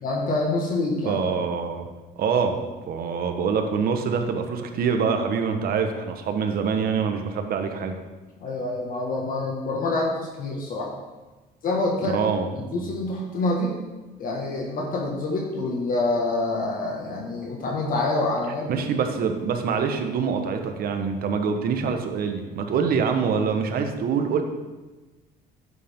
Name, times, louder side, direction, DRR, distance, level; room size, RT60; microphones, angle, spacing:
voice 1, 0.0-1.2 8.4-10.9 11.6-12.2 12.6-13.8 14.2-18.7, left 2 dB, 55° left, -1 dB, 1.8 m, -26 dB
voice 2, 1.0-1.9 2.2-2.6 2.9-8.0 12.1-12.5 12.8-12.9 18.7-24.4, right 6 dB, 60° right, 5 dB, 1.3 m, -25 dB
11.0 x 8.5 x 3.7 m, 1.2 s
cardioid pair, 110°, 17 cm